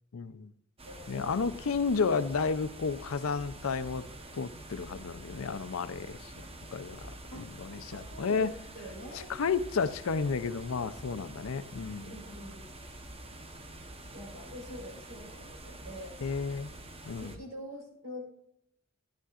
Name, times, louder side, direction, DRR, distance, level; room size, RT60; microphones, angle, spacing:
voice 1, 0.1-0.5 1.1-4.1 4.3-8.5 9.1-12.1 16.2-16.7 17.1-17.4, left 5 dB, 85° left, 12 dB, 0.5 m, -32 dB
sound 1, 0.8-17.4, right 1 dB, 30° right, 1.0 m, -47 dB
voice 2, 0.8-1.5 7.3-8.5 8.7-9.3 12.0-12.6 13.7-16.3 17.2-18.2, equal, 70° right, 0 dB, 4.2 m, -46 dB
13.0 x 10.5 x 2.5 m, 0.73 s
head